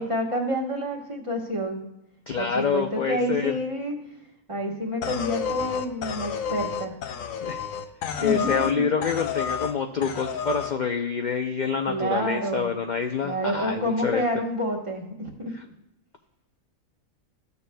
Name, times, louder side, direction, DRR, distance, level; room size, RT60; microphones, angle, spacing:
voice 1, 0.0-1.9 2.3-4.0 4.5-6.9 8.2-8.9 11.9-12.7 13.2-15.6, equal, 25° right, 0 dB, 1.3 m, -28 dB
voice 2, 2.3-3.6 7.4-7.6 8.2-14.3, left 6 dB, 50° left, 4 dB, 0.5 m, -27 dB
sound 1, 5.0-8.8 9.0-9.7 10.0-10.7, left 7 dB, 90° left, 1.1 m, -30 dB
14.0 x 6.8 x 2.2 m, 0.89 s
omnidirectional pair, 1.4 m